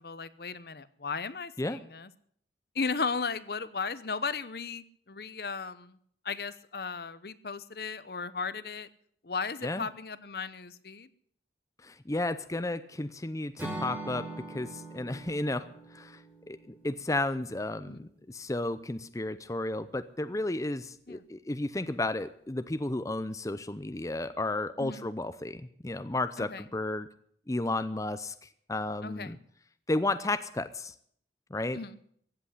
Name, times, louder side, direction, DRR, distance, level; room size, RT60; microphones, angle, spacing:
voice 1, 0.0-2.1 2.7-6.0 6.2-8.9 9.2-11.1 17.9-18.1 21.1-21.2 24.8-25.1 26.4-26.6 29.0-29.4 31.7-32.0, left 4 dB, 60° left, 15 dB, 0.8 m, -36 dB
voice 2, 11.8-27.1 27.5-29.4 29.9-30.9 31.5-31.8, left 2 dB, 20° left, 12 dB, 0.6 m, -33 dB
Acoustic guitar / Strum, 13.6-17.7, right 2 dB, 10° right, 5.3 m, -42 dB
15.5 x 8.2 x 10.0 m, 0.64 s
head